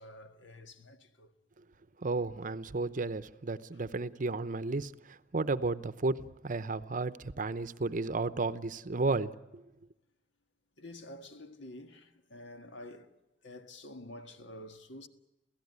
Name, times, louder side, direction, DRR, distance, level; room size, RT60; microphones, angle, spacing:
voice 1, 0.0-1.3 10.8-13.1 13.4-15.1, left 1 dB, 80° left, 1.7 m, -49 dB
voice 2, 2.0-9.6, right 3 dB, 45° right, 0.8 m, -33 dB
28.0 x 16.5 x 9.6 m
head